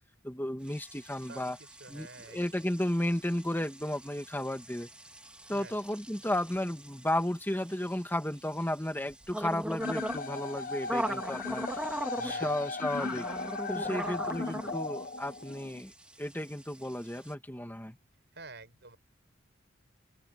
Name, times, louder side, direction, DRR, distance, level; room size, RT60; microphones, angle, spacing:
voice 1, 0.2-1.6 1.9-4.9 5.5-11.9 12.2-13.3 13.7-15.9 16.2-18.0, left 1 dB, 10° left, 2.0 m, -33 dB
sound 1, 0.7-17.3, right 1 dB, 5° right, 1.9 m, -41 dB
voice 2, 1.8-2.6 5.5-5.8 12.1-12.6 13.7-14.8 18.3-19.0, right 3 dB, 60° right, 7.2 m, -48 dB
sound 2, 9.8-15.8, left 3 dB, 45° left, 1.1 m, -37 dB
head